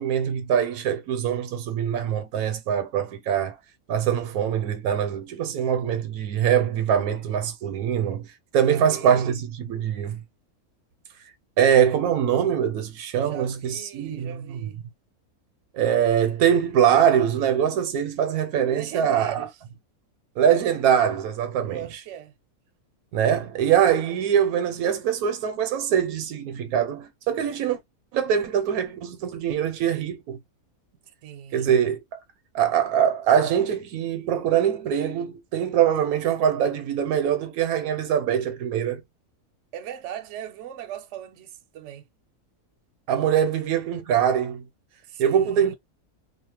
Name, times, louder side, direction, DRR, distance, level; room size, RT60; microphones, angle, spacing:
voice 1, 0.0-3.6 3.9-10.2 11.6-14.3 15.7-19.5 20.4-21.8 23.1-27.8 28.1-30.4 31.5-32.2 32.5-39.0 43.1-44.6 45.2-45.7, right 9 dB, 80° right, 1.1 m, -23 dB
voice 2, 8.7-9.4 13.2-14.8 18.7-19.5 21.6-22.3 23.9-24.2 31.2-31.7 39.7-42.1 43.4-43.5 45.0-45.7, right 10 dB, 65° right, 0.8 m, -38 dB
2.8 x 2.1 x 2.9 m
omnidirectional pair, 1.6 m